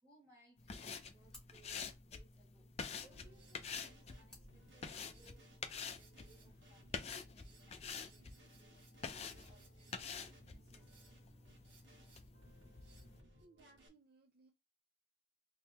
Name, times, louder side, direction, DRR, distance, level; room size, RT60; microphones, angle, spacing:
voice 1, 0.0-2.7 3.0-10.9, right 2 dB, 20° right, 1.9 m, -69 dB
sound 1, 0.5-5.5, left 1 dB, 5° left, 1.1 m, -66 dB
sound 2, 0.6-13.2, left 5 dB, 35° left, 0.4 m, -49 dB
Drum kit, 3.0-13.9, right 1 dB, 65° right, 1.4 m, -64 dB
voice 2, 13.4-14.5, right 3 dB, 50° right, 0.5 m, -66 dB
3.7 x 2.9 x 2.9 m
head